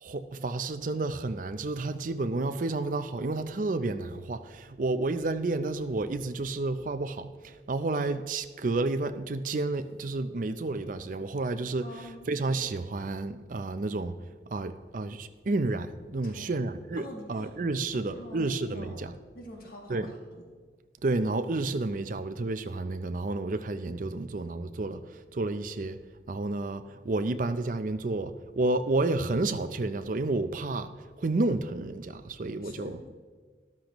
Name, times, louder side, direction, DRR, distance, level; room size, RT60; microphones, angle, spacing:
voice 1, 0.0-14.2 14.5-19.1 19.9-20.1 21.0-26.0 26.3-30.9 31.2-33.0, right 2 dB, 45° right, 0.5 m, -31 dB
voice 2, 11.8-12.3 16.2-16.6 17.0-17.4 17.9-19.1 19.3-20.4 32.6-33.1, left 1 dB, 55° left, 1.7 m, -45 dB
13.0 x 12.0 x 3.0 m
head